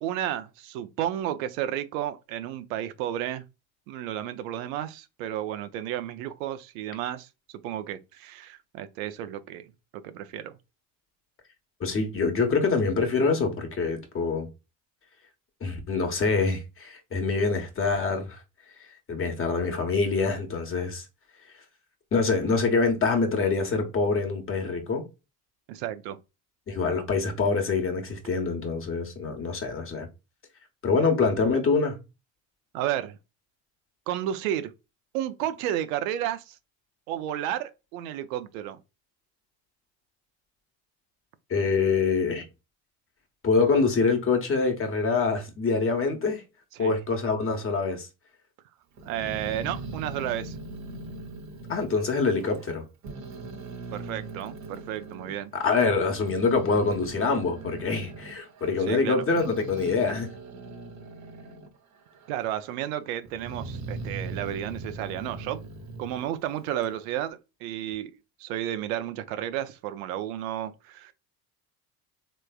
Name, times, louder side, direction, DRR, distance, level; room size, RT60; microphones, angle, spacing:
voice 1, 0.0-3.4 3.9-7.3 7.6-9.7 10.0-10.5 25.7-26.2 32.7-33.2 34.1-34.7 35.1-36.6 37.1-38.8 46.8-46.9 49.0-50.6 53.9-55.5 58.9-59.2 62.3-65.6 66.0-68.1 68.4-71.1, right 11 dB, 85° right, 0.6 m, -32 dB
voice 2, 11.8-14.5 15.6-18.4 19.1-21.0 22.1-25.0 26.7-30.1 30.8-32.0 41.5-42.4 43.4-46.4 46.8-48.1 51.7-52.8 55.5-60.3, left 4 dB, 30° left, 1.1 m, -25 dB
Growling, 49.0-52.7 53.0-55.4 55.9-61.8 62.1-62.8 63.3-67.0, right 2 dB, 45° right, 0.8 m, -40 dB
3.3 x 3.1 x 2.3 m
supercardioid pair, 90°, 40 cm